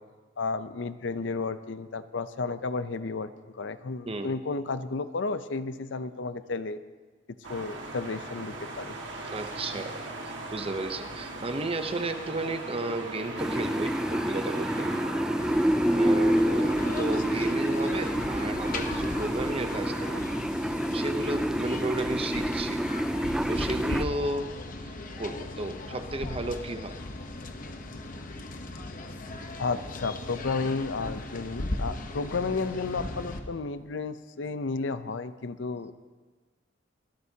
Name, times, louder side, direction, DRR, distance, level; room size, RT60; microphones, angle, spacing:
voice 1, 0.4-6.8 7.5-9.0 29.6-35.9, left 4 dB, 75° left, 12 dB, 0.6 m, -32 dB
sound 1, 7.4-20.1, right 2 dB, 75° right, 2.0 m, -40 dB
voice 2, 9.3-10.0 10.5-14.9 15.9-20.3 20.9-22.8 23.5-24.5 24.8-27.0, right 2 dB, 30° right, 8 dB, 0.8 m, -33 dB
sound 2, 13.4-24.0, equal, 5° right, 0.3 m, -28 dB
sound 3, 15.4-33.4, left 2 dB, 45° left, 0.9 m, -38 dB
23.0 x 12.5 x 2.8 m, 1.3 s
head